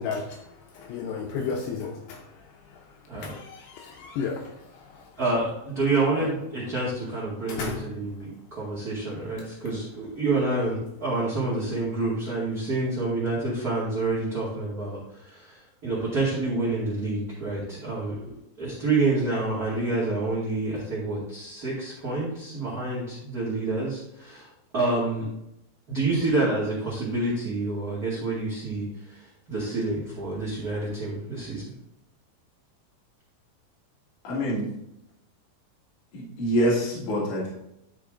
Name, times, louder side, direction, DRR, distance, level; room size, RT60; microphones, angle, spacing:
voice 1, 0.0-5.1 6.2-6.3 7.5-7.9, left 5 dB, 80° left, 1 dB, 2.8 m, -34 dB
voice 2, 5.2-25.2 25.9-29.2 29.5-31.6, right 2 dB, 30° right, -8 dB, 1.9 m, -28 dB
voice 3, 34.2-34.7 36.1-37.5, equal, 55° left, -5 dB, 3.1 m, -25 dB
12.5 x 5.1 x 3.7 m, 0.82 s
omnidirectional pair, 5.0 m